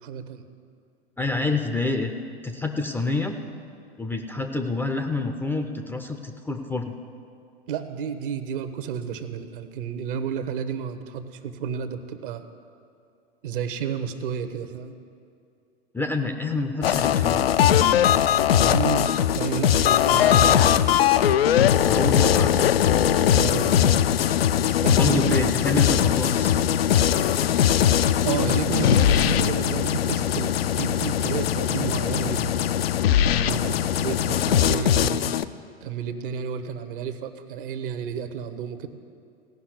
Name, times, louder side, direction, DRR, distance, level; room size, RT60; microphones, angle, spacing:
voice 1, 0.0-0.4 7.7-12.4 13.4-15.0 18.5-19.1 19.3-20.8 23.3-24.0 24.8-25.4 28.2-32.5 33.4-35.3 35.8-38.9, right 7 dB, 55° right, 10 dB, 1.0 m, -31 dB
voice 2, 1.2-2.1 2.4-3.4 4.0-6.9 15.9-17.4 21.8-22.6 24.7-26.6 33.3-33.5, left 2 dB, 5° left, 5 dB, 0.5 m, -28 dB
sound 1, 16.8-35.4, left 10 dB, 65° left, 0.5 m, -20 dB
16.5 x 5.8 x 9.5 m, 2.4 s
figure-of-eight pair, 90°, 32 cm